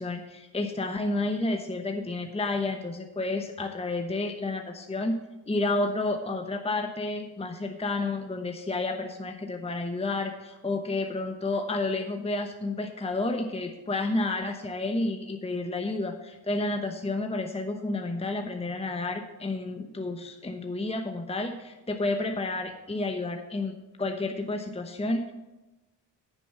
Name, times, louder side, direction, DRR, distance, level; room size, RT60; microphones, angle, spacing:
voice 1, 0.0-5.2 5.5-25.3, left 2 dB, 10° left, 5 dB, 1.0 m, -30 dB
9.4 x 7.2 x 5.9 m, 1.1 s
supercardioid pair, 40°, 49 cm